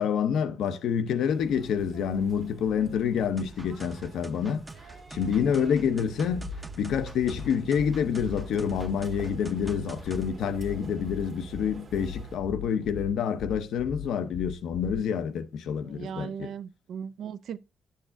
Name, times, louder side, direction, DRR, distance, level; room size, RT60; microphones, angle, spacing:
voice 1, 0.0-4.7 5.1-6.5 6.8-16.5, left 7 dB, 85° left, 0.7 m, -27 dB
sound 1, 1.3-12.4, right 4 dB, 50° right, 1.5 m, -46 dB
sound 2, 3.4-10.3, right 2 dB, 15° right, 0.6 m, -46 dB
sound 3, 6.3-15.3, left 9 dB, 35° left, 0.7 m, -40 dB
voice 2, 15.8-17.6, right 7 dB, 80° right, 0.5 m, -38 dB
11.0 x 6.5 x 2.6 m
cardioid pair, 110°, 0 cm